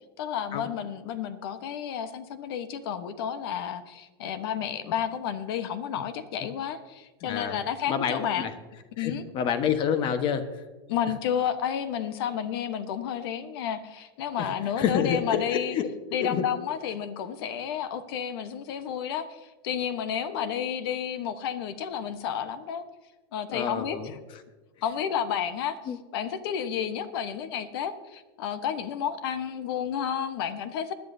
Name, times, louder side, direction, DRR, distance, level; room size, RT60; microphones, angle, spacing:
voice 1, 0.2-8.5 9.0-9.2 10.9-15.8 16.1-22.8 23.3-24.2 24.8-25.8 26.1-30.9, left 8 dB, 65° left, 11 dB, 1.1 m, -31 dB
voice 2, 7.2-7.6 7.9-8.5 9.0-10.6 14.4-14.5 14.8-15.9 16.2-16.4 18.9-19.0 20.3-20.5 23.5-24.4 25.8-26.0, left 8 dB, 40° left, 9 dB, 1.3 m, -29 dB
20.5 x 10.5 x 2.7 m, 1.2 s
supercardioid pair, 130°, 14 cm